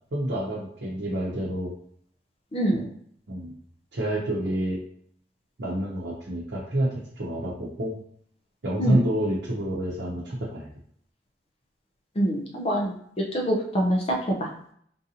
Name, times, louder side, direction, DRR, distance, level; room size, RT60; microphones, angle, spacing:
voice 1, 0.1-1.7 2.7-2.8 3.3-3.5 3.9-4.8 5.6-8.0 8.6-10.7, right 1 dB, 65° right, -5 dB, 0.8 m, -28 dB
voice 2, 2.5-2.8 8.8-9.0 12.2-12.9 13.3-14.0, equal, 35° left, 0 dB, 0.5 m, -24 dB
3.7 x 2.7 x 2.8 m, 0.64 s
head